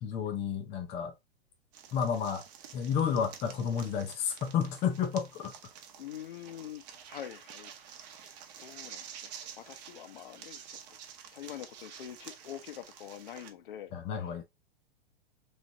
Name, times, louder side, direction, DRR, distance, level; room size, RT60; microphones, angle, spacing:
voice 1, 0.0-1.1 1.9-2.4 2.7-5.6 13.9-14.4, left 7 dB, 20° left, 0.5 m, -31 dB
sound 1, 1.7-13.5, right 8 dB, 40° right, 0.9 m, -50 dB
voice 2, 6.0-7.7 8.2-11.0 11.3-14.4, left 10 dB, 55° left, 0.8 m, -46 dB
3.9 x 3.2 x 2.9 m
figure-of-eight pair, 105°, 32 cm